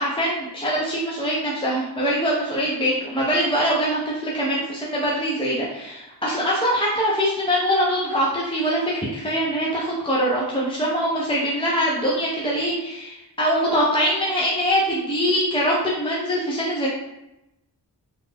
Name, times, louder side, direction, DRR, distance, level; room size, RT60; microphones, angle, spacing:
voice 1, 0.0-16.9, equal, 15° left, -5 dB, 0.5 m, -23 dB
3.0 x 2.0 x 3.5 m, 0.91 s
wide cardioid pair, 70°, 42 cm